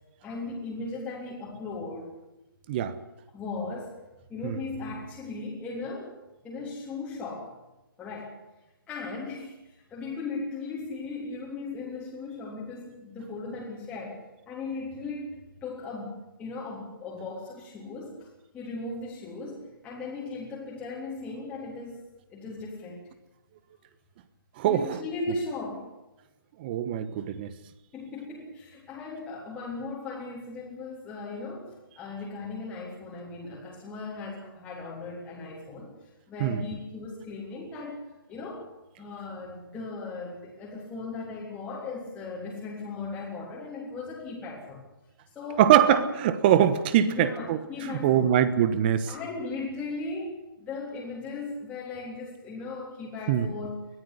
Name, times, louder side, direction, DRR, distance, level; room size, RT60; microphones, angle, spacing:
voice 1, 0.2-2.1 3.3-3.9 4.3-6.1 6.4-7.5 8.0-8.3 8.9-16.1 16.4-18.3 18.5-22.0 22.3-23.1 24.7-25.9 27.9-35.9 36.3-38.7 39.0-44.8 45.4-46.0 47.0-48.3 49.1-53.8, left 3 dB, 10° left, -5 dB, 3.5 m, -37 dB
voice 2, 24.6-25.0 26.6-27.5 36.4-36.6 45.6-49.1 53.3-53.5, right 10 dB, 25° right, 14 dB, 1.2 m, -23 dB
21.5 x 13.5 x 9.9 m, 0.97 s
hypercardioid pair, 155°, 12 cm